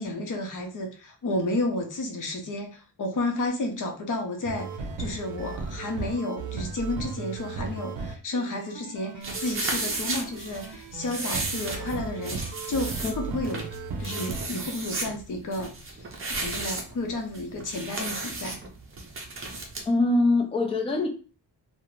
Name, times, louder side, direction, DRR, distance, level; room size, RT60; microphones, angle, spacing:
voice 1, 0.0-4.7 5.0-12.4 12.7-13.7 14.0-16.1 16.4-18.6, left 2 dB, 50° left, 3 dB, 0.6 m, -31 dB
sound 1, 4.4-14.5, right 4 dB, 85° right, 0.5 m, -36 dB
sound 2, 9.2-19.8, right 3 dB, 35° right, 0.5 m, -34 dB
voice 2, 19.9-21.1, left 2 dB, 15° left, 3 dB, 0.3 m, -23 dB
2.4 x 2.0 x 3.0 m, 0.37 s
wide cardioid pair, 175°, 40 cm